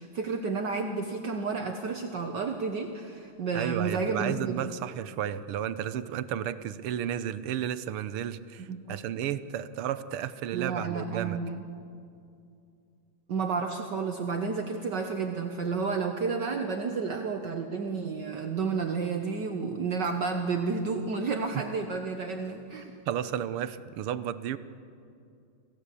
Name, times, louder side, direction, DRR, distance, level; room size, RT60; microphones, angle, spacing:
voice 1, 0.0-4.7 8.7-9.0 10.5-11.6 13.3-22.9, right 4 dB, 60° right, 4 dB, 1.6 m, -31 dB
voice 2, 3.5-11.4 21.5-21.6 23.1-24.6, right 10 dB, 85° right, 13 dB, 1.7 m, -33 dB
27.5 x 16.0 x 8.4 m, 2.5 s
omnidirectional pair, 2.4 m